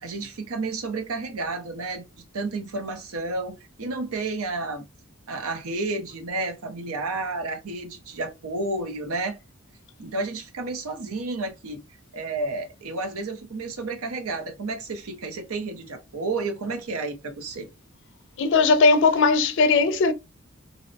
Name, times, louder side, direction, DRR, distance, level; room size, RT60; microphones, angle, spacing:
voice 1, 0.0-2.1 2.3-4.8 5.3-9.4 10.0-11.8 12.1-17.7, right 3 dB, 80° right, 0.6 m, -31 dB
voice 2, 18.4-20.1, left 4 dB, 60° left, 0.4 m, -18 dB
2.6 x 2.0 x 2.6 m
head